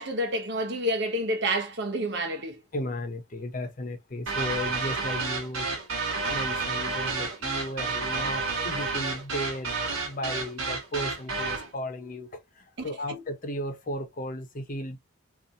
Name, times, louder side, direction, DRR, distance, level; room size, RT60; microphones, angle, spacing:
voice 1, 0.0-2.6 12.8-13.2, right 1 dB, 55° right, 0.9 m, -29 dB
voice 2, 2.7-5.7 6.2-12.4 12.8-15.0, left 1 dB, 40° left, 0.7 m, -35 dB
sound 1, 4.3-11.7, right 4 dB, 70° right, 1.2 m, -30 dB
2.6 x 2.4 x 4.0 m
head